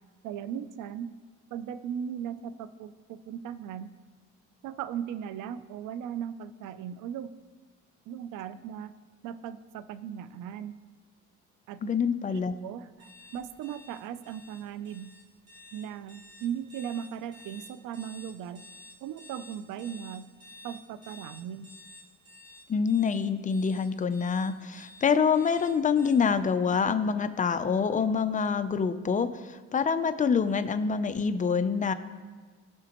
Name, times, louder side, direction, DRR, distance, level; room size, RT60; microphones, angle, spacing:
voice 1, 0.2-1.1 1.5-3.9 4.6-7.3 8.1-8.9 9.2-10.8 11.7-11.9 12.3-15.1 15.7-18.6 19.0-20.2 20.6-21.7, right 9 dB, 90° right, 13 dB, 0.5 m, -38 dB
voice 2, 11.8-12.5 22.7-31.9, left 6 dB, 25° left, 10 dB, 0.5 m, -26 dB
sound 1, 13.0-26.1, left 2 dB, 55° right, 3.1 m, -51 dB
17.0 x 5.9 x 3.0 m, 1.4 s
cardioid pair, 90°, 30 cm